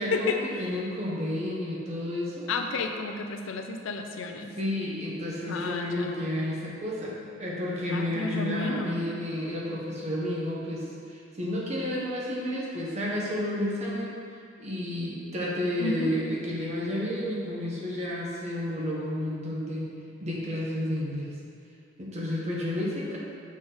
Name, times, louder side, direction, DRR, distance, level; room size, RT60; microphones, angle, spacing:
voice 1, 0.0-2.5 4.3-14.2 14.6-19.9 20.2-21.3 22.0-23.2, left 1 dB, 35° right, -5 dB, 1.0 m, -31 dB
voice 2, 2.5-4.5 5.5-6.1 7.9-9.0 15.8-16.2, left 3 dB, 75° left, 5 dB, 0.4 m, -31 dB
6.2 x 4.0 x 3.8 m, 2.4 s
head